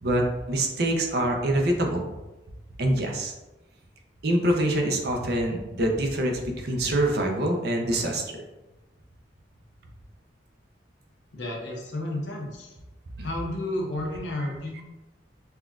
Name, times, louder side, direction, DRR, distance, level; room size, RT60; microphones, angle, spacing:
voice 1, 0.0-2.0 2.8-3.3 4.2-8.4 13.2-13.3, right 1 dB, 55° right, 2 dB, 0.5 m, -25 dB
voice 2, 11.3-12.8 13.2-14.8, left 1 dB, 70° left, -1 dB, 0.8 m, -32 dB
5.8 x 2.3 x 2.3 m, 1.0 s
head